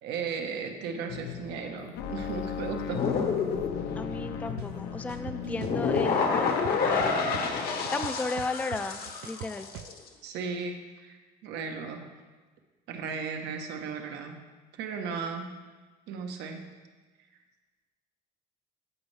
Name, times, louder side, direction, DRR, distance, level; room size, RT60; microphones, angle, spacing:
voice 1, 0.0-3.1 10.2-12.0 12.9-14.4 14.7-15.5 16.1-16.6, right 5 dB, 90° right, 5 dB, 1.0 m, -36 dB
sound 1, 1.1-8.1, left 8 dB, 85° left, 0.5 m, -39 dB
sound 2, 2.9-9.9, left 5 dB, 65° left, 1.1 m, -29 dB
voice 2, 4.0-7.4 7.9-9.7, left 3 dB, 10° left, 9 dB, 0.3 m, -35 dB
sound 3, 4.6-4.7 5.1-6.1 6.5-7.5 7.8-9.9, right 13 dB, 75° right, 0.4 m, -41 dB
15.0 x 5.3 x 3.2 m, 1.3 s
cardioid pair, 110°, 17 cm